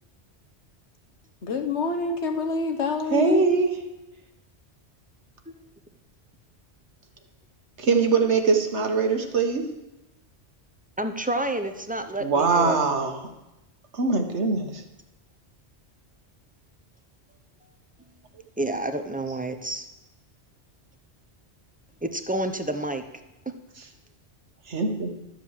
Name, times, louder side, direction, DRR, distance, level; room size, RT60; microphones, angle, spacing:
voice 1, 1.4-3.4, left 3 dB, 85° left, 6 dB, 1.5 m, -26 dB
voice 2, 3.1-3.8 7.8-9.7 12.2-13.3 13.9-14.8 24.7-25.1, right 4 dB, 85° right, 4 dB, 1.6 m, -22 dB
voice 3, 11.0-12.8 18.6-19.9 22.0-23.0, right 1 dB, 10° right, 7 dB, 0.6 m, -29 dB
12.0 x 7.5 x 7.4 m, 0.95 s
omnidirectional pair, 1.1 m